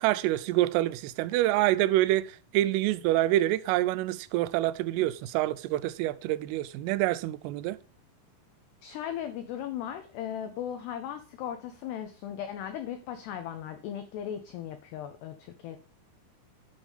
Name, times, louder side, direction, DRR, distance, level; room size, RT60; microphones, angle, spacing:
voice 1, 0.0-7.8, right 15 dB, 90° right, 3.2 m, -26 dB
voice 2, 8.8-15.8, left 10 dB, 85° left, 2.3 m, -37 dB
11.0 x 5.4 x 3.5 m
omnidirectional pair, 5.7 m